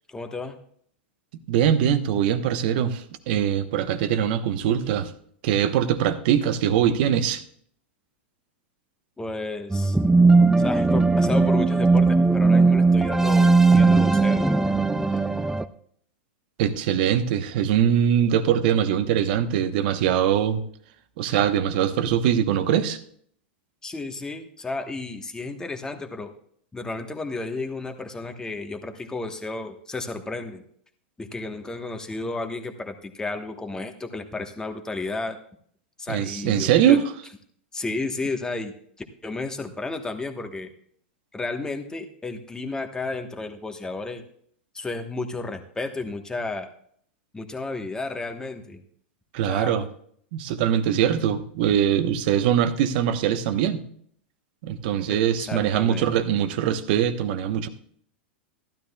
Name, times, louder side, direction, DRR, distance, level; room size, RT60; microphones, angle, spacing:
voice 1, 0.1-0.6 9.2-10.0 10.6-14.6 15.4-15.5 23.8-26.3 26.7-30.6 31.2-35.4 36.0-37.0 37.7-40.7 41.3-44.2 44.7-46.7 47.3-48.8 49.5-49.8 55.1-56.1, left 3 dB, 10° left, 6 dB, 1.2 m, -32 dB
voice 2, 1.5-5.1 5.4-7.4 16.6-20.6 21.2-23.0 36.1-37.0 49.3-49.9 50.3-53.8 54.6-57.7, right 9 dB, 60° right, 10 dB, 1.0 m, -22 dB
sound 1, 9.7-15.7, right 3 dB, 5° right, 0.4 m, -18 dB
15.5 x 12.0 x 2.3 m, 0.63 s
hypercardioid pair, 115°, 6 cm